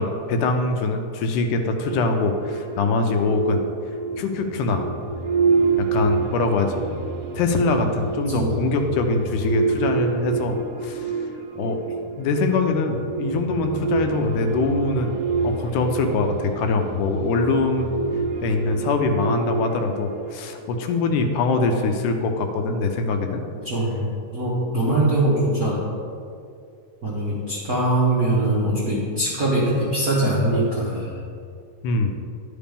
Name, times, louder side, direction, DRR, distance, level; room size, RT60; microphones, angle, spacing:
voice 1, 0.0-3.6 4.2-4.9 5.8-6.9 7.4-10.6 10.8-11.2 11.6-11.8 12.2-15.1 15.4-17.9 18.4-23.4 25.0-25.1 31.8-32.2, left 3 dB, 85° left, 5 dB, 2.1 m, -23 dB
sound 1, 1.8-20.7, right 5 dB, 75° right, 1.4 m, -27 dB
voice 2, 23.5-25.8 27.0-31.1, right 1 dB, 55° right, -9 dB, 0.9 m, -22 dB
11.0 x 5.1 x 3.5 m, 2.4 s
omnidirectional pair, 3.6 m